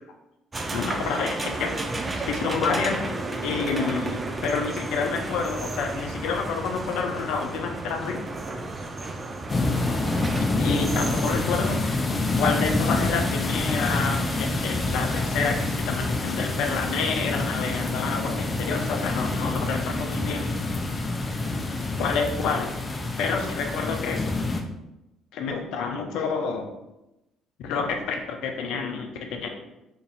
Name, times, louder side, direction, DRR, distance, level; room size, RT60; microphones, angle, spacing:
sound 1, 0.5-11.8, right 2 dB, 25° right, 0.5 m, -32 dB
voice 1, 0.7-1.8 2.3-3.1 3.4-8.2 10.6-11.8 12.4-20.6 22.0-22.7 23.2-24.2 25.3-26.7 27.6-29.5, left 5 dB, 70° left, 4 dB, 0.6 m, -28 dB
sound 2, 9.5-24.6, left 2 dB, 30° left, 0.5 m, -27 dB
2.9 x 2.7 x 3.9 m, 0.93 s
hypercardioid pair, 60°, 0 cm